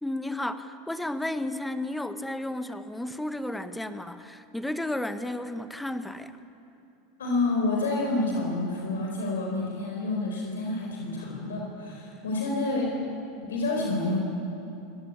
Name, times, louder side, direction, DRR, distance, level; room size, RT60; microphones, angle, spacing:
voice 1, 0.0-6.3, left 1 dB, 5° left, 10 dB, 1.5 m, -33 dB
voice 2, 7.2-12.9 13.4-14.2, left 2 dB, 85° left, 0 dB, 4.5 m, -28 dB
24.0 x 18.5 x 9.8 m, 2.7 s
hypercardioid pair, 95°, 0 cm